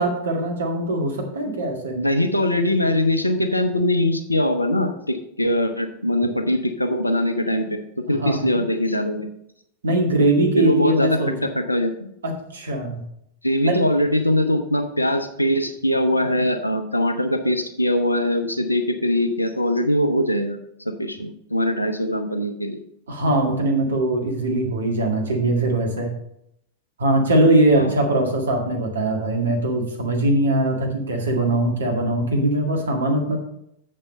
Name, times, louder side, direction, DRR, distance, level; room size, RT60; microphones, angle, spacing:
voice 1, 0.0-2.0 8.1-8.4 9.8-11.3 12.2-13.0 13.6-13.8 23.1-26.2 27.0-33.4, right 1 dB, 70° right, 2 dB, 1.8 m, -21 dB
voice 2, 1.9-7.8 8.1-9.3 10.6-12.1 13.4-20.6 20.8-22.8 27.7-27.9, left 1 dB, 85° left, 7 dB, 0.8 m, -22 dB
7.5 x 6.6 x 5.2 m, 0.77 s
figure-of-eight pair, 90°, 0 cm